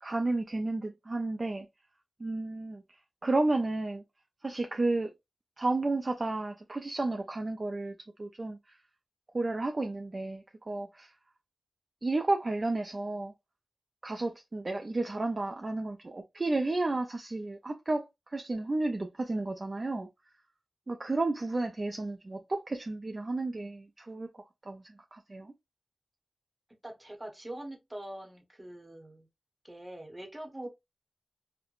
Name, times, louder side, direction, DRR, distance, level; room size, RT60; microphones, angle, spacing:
voice 1, 0.0-1.7 2.2-4.0 4.4-5.1 5.6-8.8 9.3-11.1 12.0-13.3 14.0-20.1 20.9-25.5, right 2 dB, 40° right, 0.3 m, -32 dB
voice 2, 26.8-29.3 29.6-30.7, right 1 dB, 20° right, 0.8 m, -43 dB
3.0 x 2.0 x 2.3 m
wide cardioid pair, 75°, 0 cm